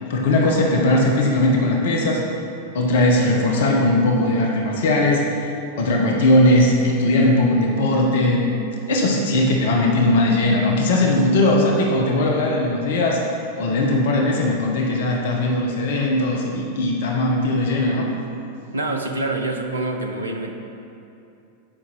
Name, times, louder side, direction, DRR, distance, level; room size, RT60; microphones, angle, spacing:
voice 1, 0.0-2.2 2.7-5.2 5.8-8.5 8.9-13.2 13.5-18.1, left 1 dB, 55° left, 0 dB, 1.0 m, -19 dB
voice 2, 18.7-20.5, right 2 dB, 75° right, 4 dB, 0.7 m, -26 dB
7.9 x 5.6 x 6.2 m, 2.7 s
figure-of-eight pair, 90°, 0 cm